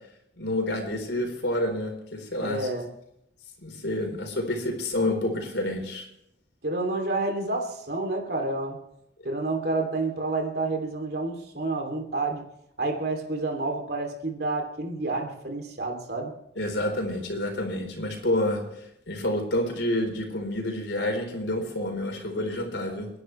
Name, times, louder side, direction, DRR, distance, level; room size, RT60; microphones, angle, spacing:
voice 1, 0.4-2.7 3.6-6.1 16.6-18.6 19.1-23.1, left 1 dB, 85° left, 3 dB, 4.2 m, -28 dB
voice 2, 2.4-2.9 6.6-8.8 9.2-12.4 12.8-16.3, right 2 dB, 60° right, 3 dB, 3.1 m, -29 dB
29.0 x 10.5 x 3.3 m, 0.80 s
head